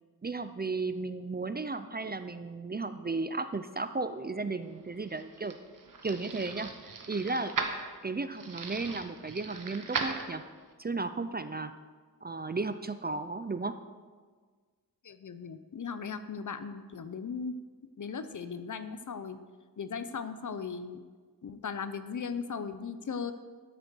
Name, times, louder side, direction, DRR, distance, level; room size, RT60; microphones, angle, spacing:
voice 1, 0.2-5.5 6.0-7.7 8.0-10.4 10.8-11.7 12.2-13.8, right 3 dB, 25° right, 10 dB, 0.4 m, -34 dB
sound 1, 4.8-10.7, right 4 dB, 60° right, 1.2 m, -38 dB
voice 2, 15.0-17.5 18.0-19.4 19.8-21.0 21.4-23.3, left 5 dB, 55° left, 11 dB, 0.7 m, -37 dB
13.0 x 6.6 x 6.1 m, 1.5 s
wide cardioid pair, 110°, 37 cm